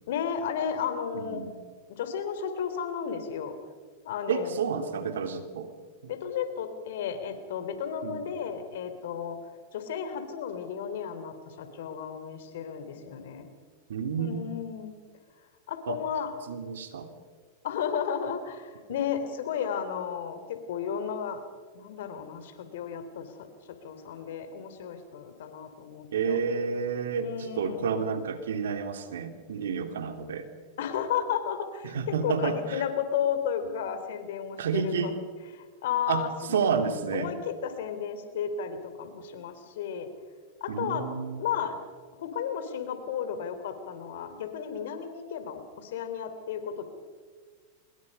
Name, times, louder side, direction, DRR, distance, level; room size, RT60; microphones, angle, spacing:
voice 1, 0.1-1.4 1.9-3.6 4.1-4.6 6.1-9.4 9.7-13.5 14.2-15.0 15.7-16.4 17.6-21.5 21.7-26.4 27.2-27.9 30.8-35.1 35.6-36.6 37.1-40.1 40.6-41.1 41.4-41.8 42.2-46.8, left 8 dB, 70° left, 9 dB, 3.4 m, -33 dB
voice 2, 1.1-1.5 4.3-5.7 6.0-6.1 8.0-8.2 13.9-14.5 15.9-16.0 16.5-17.1 26.1-27.3 27.6-30.5 31.8-32.8 34.6-35.1 36.1-37.3 40.7-41.4, right 6 dB, 80° right, 8 dB, 2.7 m, -30 dB
25.5 x 21.5 x 5.5 m, 1.5 s
hypercardioid pair, 110°, 0 cm